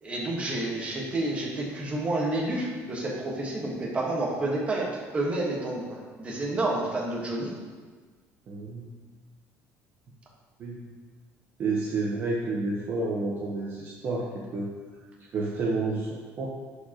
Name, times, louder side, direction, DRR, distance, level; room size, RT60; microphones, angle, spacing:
voice 1, 0.0-4.9 5.1-7.5, right 2 dB, 20° right, -3 dB, 1.4 m, -29 dB
voice 2, 8.5-8.9 10.6-10.8 11.6-14.7 15.3-16.1 16.4-16.5, right 3 dB, 40° right, -4 dB, 1.1 m, -30 dB
11.0 x 4.9 x 3.0 m, 1.4 s
cardioid pair, 145°, 6 cm